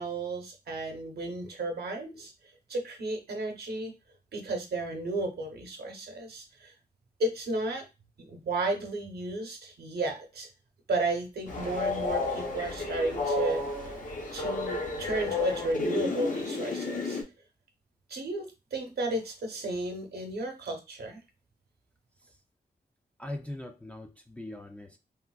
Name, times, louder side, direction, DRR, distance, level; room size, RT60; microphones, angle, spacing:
voice 1, 0.0-2.3 2.7-3.9 4.3-6.7 7.2-7.9 8.2-10.5 10.9-14.0 14.3-17.2 18.1-21.2, right 2 dB, 70° right, 4 dB, 0.8 m, -33 dB
Train, 11.5-17.2, left 2 dB, 50° left, 0.7 m, -31 dB
voice 2, 23.2-25.0, left 1 dB, 5° left, 3 dB, 0.3 m, -40 dB
3.5 x 2.5 x 2.3 m, 0.27 s
wide cardioid pair, 160°, 17 cm